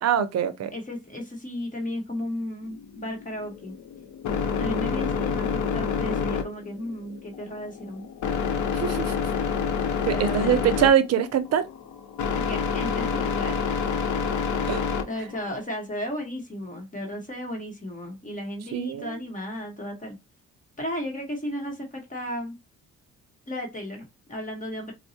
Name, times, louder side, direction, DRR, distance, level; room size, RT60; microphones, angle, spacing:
voice 1, 0.0-0.7 8.8-9.1 10.0-11.7 14.7-14.8 18.7-19.2, right 9 dB, 55° right, 0.6 m, -23 dB
voice 2, 0.7-3.7 4.6-8.1 10.1-10.7 12.3-13.6 15.1-20.2 20.8-22.6 23.5-24.9, left 1 dB, 25° left, 1.1 m, -34 dB
sound 1, 2.6-15.6, left 6 dB, 75° left, 0.7 m, -28 dB
4.4 x 2.0 x 2.7 m
cardioid pair, 90°, 30 cm